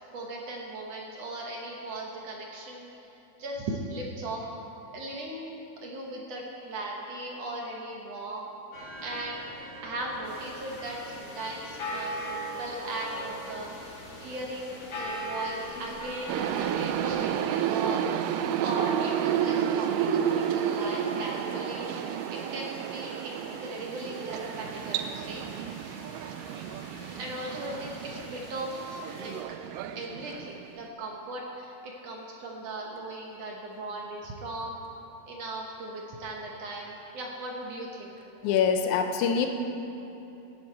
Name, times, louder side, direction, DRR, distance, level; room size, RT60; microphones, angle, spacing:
voice 1, 0.1-2.9 3.4-4.5 4.9-5.6 5.8-8.5 9.0-9.4 9.8-13.7 14.2-18.1 18.6-21.9 22.3-25.4 27.1-29.3 29.9-34.8 35.3-38.1, right 2 dB, 70° right, -1 dB, 1.6 m, -38 dB
sound 1, 8.7-17.1, equal, 45° left, 3.5 m, -39 dB
sound 2, 10.2-29.4, left 2 dB, 60° left, 4.1 m, -50 dB
sound 3, 16.3-30.8, right 9 dB, 85° right, 1.9 m, -31 dB
voice 2, 38.4-39.5, left 7 dB, 85° left, 5 dB, 1.7 m, -24 dB
17.0 x 9.7 x 4.5 m, 2.9 s
omnidirectional pair, 4.3 m